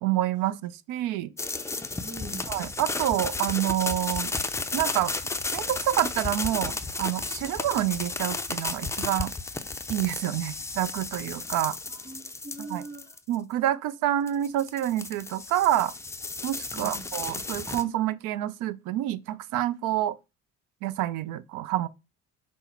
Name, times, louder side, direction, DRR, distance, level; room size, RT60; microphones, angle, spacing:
voice 1, 0.0-1.3 2.5-4.3 4.7-5.1 5.5-9.3 9.9-11.8 12.6-12.8 13.3-15.9 16.4-20.2 20.8-21.9, right 13 dB, 75° right, 0.5 m, -28 dB
sound 1, 1.4-13.3 14.3-17.8, left 3 dB, 10° left, 0.3 m, -33 dB
voice 2, 2.0-2.5 11.9-13.1 16.7-17.0, right 2 dB, 25° right, 3.0 m, -41 dB
5.4 x 2.1 x 4.3 m
supercardioid pair, 85°, 32 cm